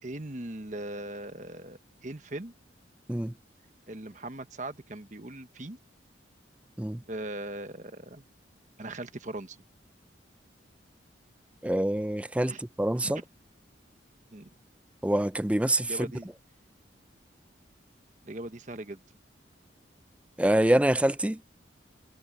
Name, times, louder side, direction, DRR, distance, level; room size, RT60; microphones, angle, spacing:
voice 1, 0.0-2.5 3.9-5.8 7.1-8.2 8.8-9.6 12.5-12.6 13.0-13.3 14.3-14.5 15.9-16.3 18.2-19.0, right 1 dB, 40° right, 1.2 m, -39 dB
voice 2, 11.6-13.2 15.0-15.9 20.4-21.4, right 1 dB, 5° right, 0.4 m, -25 dB
head